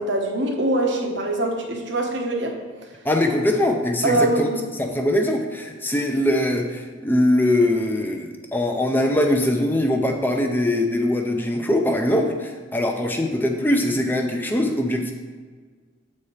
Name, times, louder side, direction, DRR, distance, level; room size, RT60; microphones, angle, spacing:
voice 1, 0.0-2.6 4.0-4.6, right 2 dB, 60° right, 2 dB, 1.0 m, -23 dB
voice 2, 3.0-4.5 4.8-15.1, left 1 dB, 10° left, 3 dB, 0.5 m, -22 dB
7.8 x 4.2 x 4.9 m, 1.5 s
head